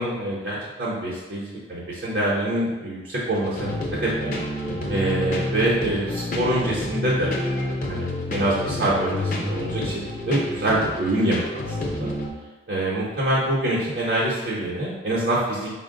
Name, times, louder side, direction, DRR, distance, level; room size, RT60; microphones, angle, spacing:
voice 1, 0.0-3.7 4.0-4.3 4.9-7.3 7.6-11.6 11.9-12.1 12.7-15.7, right 1 dB, 60° right, -7 dB, 0.7 m, -25 dB
sound 1, 3.3-12.3, left 1 dB, 45° left, 0.6 m, -29 dB
4.3 x 2.1 x 3.7 m, 1.2 s
head